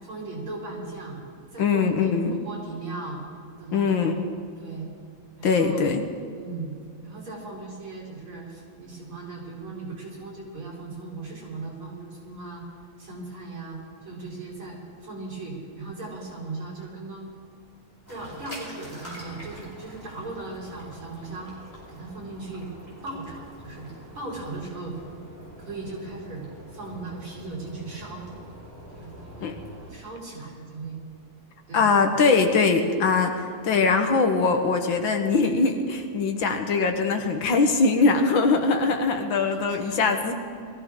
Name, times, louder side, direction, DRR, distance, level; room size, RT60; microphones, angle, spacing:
voice 1, 0.0-1.2 1.5-3.2 3.6-4.1 4.6-4.9 5.4-5.8 6.3-6.7 7.0-12.6 13.0-13.8 14.0-17.3 18.1-21.5 21.9-22.7 23.0-23.9 24.1-25.0 25.6-26.5 26.7-28.3 28.9-29.5 29.9-31.0 31.7-31.9 39.7-40.0, right 3 dB, 75° right, -5 dB, 5.9 m, -38 dB
voice 2, 1.6-2.4 3.7-4.3 5.4-6.0 29.4-29.5 31.7-40.3, left 4 dB, 65° left, 5 dB, 1.9 m, -22 dB
sound 1, 18.1-29.9, equal, 10° left, 4.8 m, -45 dB
21.5 x 15.0 x 3.8 m, 2.3 s
omnidirectional pair, 2.3 m